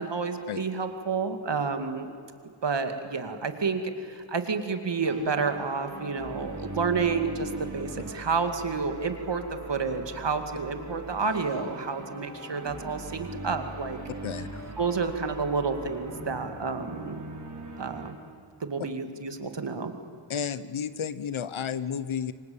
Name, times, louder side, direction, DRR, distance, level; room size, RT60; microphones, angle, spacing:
voice 1, 0.0-2.1 2.6-9.4 9.7-14.0 14.8-17.2 17.8-18.2 18.6-20.0, right 5 dB, 55° right, 7 dB, 2.4 m, -30 dB
sound 1, 5.0-18.1, right 2 dB, 35° right, 3.9 m, -40 dB
voice 2, 14.2-14.6 20.3-22.3, left 7 dB, 70° left, 15 dB, 1.1 m, -32 dB
28.0 x 24.5 x 8.8 m, 2.4 s
wide cardioid pair, 100°, 50 cm